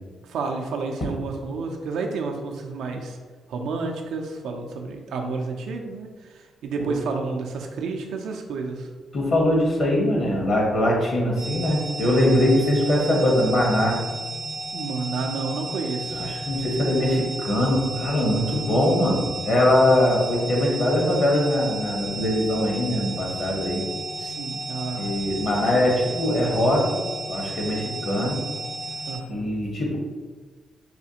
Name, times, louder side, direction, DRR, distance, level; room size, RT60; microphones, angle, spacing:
voice 1, 0.3-3.2 3.5-6.1 6.6-8.9 14.7-16.2 24.2-25.1 29.1-29.5, right 4 dB, 80° right, 2 dB, 0.4 m, -30 dB
voice 2, 9.1-14.0 16.1-23.8 24.9-27.0 27.3-28.4 29.3-30.0, left 1 dB, 50° left, -1 dB, 1.1 m, -22 dB
sound 1, 11.4-29.2, right 2 dB, 75° left, 1.4 m, -33 dB
4.2 x 2.4 x 2.8 m, 1.4 s
cardioid pair, 75°, 0 cm